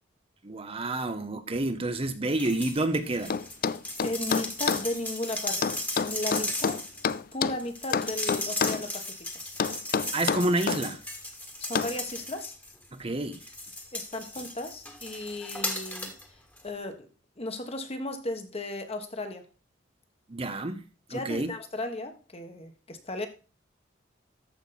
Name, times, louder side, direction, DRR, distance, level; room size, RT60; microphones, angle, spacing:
voice 1, 0.4-3.3 10.1-11.0 12.9-13.4 20.3-20.8 21.1-21.5, right 2 dB, 30° right, 0.9 m, -29 dB
sound 1, 2.4-2.8 3.1-12.9 13.3-16.2 16.6-16.7, left 1 dB, 10° left, 1.6 m, -36 dB
sound 2, 3.3-4.9 5.6-7.6 7.9-8.9 9.6-10.8 11.7-12.0, left 6 dB, 50° left, 0.4 m, -28 dB
voice 2, 4.0-6.8 7.3-9.0 11.6-12.5 13.9-16.4 16.6-17.1 17.4-19.5 21.1-23.3, left 1 dB, 30° left, 1.5 m, -35 dB
13.5 x 5.4 x 4.2 m
head